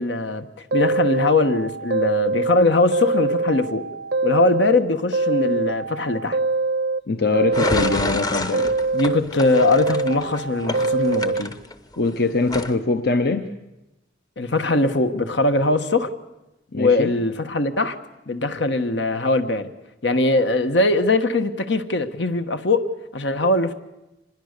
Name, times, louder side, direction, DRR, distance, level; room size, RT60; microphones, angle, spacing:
voice 1, 0.0-3.9 4.2-6.4 8.9-11.5 14.4-16.1 16.8-17.9 18.3-19.7 20.0-23.7, left 2 dB, 70° left, 1.3 m, -21 dB
sound 1, 0.7-2.6 2.9-4.8 5.1-7.0 7.3-9.2 9.5-11.4, right 3 dB, 65° right, 0.7 m, -24 dB
voice 2, 7.1-8.8 12.0-13.5 16.7-17.1, left 3 dB, 55° left, 0.9 m, -22 dB
sound 2, 7.5-12.1 12.5-12.7, left 2 dB, 20° left, 0.9 m, -29 dB
26.0 x 20.5 x 6.7 m
head